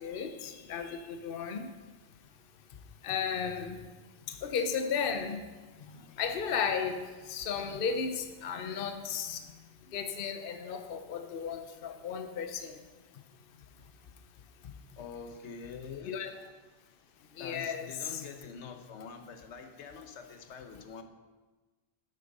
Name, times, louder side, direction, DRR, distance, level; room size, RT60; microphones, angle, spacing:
voice 1, 0.0-1.7 3.0-3.8 4.4-5.4 6.2-9.4 9.9-12.7 16.1-16.3 17.4-17.9, left 6 dB, 60° left, 0.9 m, -34 dB
voice 2, 15.0-16.2 17.4-21.0, left 6 dB, 85° left, 1.2 m, -45 dB
8.9 x 7.8 x 5.3 m
omnidirectional pair, 1.1 m